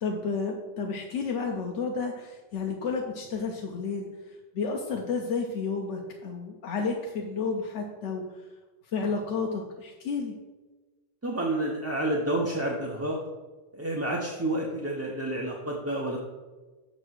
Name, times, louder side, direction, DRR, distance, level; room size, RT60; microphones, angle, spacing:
voice 1, 0.0-8.4 8.9-10.4, left 4 dB, 85° left, 1 dB, 1.1 m, -31 dB
voice 2, 11.2-13.2 13.7-16.2, right 1 dB, 15° right, -3 dB, 0.6 m, -29 dB
6.6 x 4.1 x 6.2 m, 1.3 s
omnidirectional pair, 1.2 m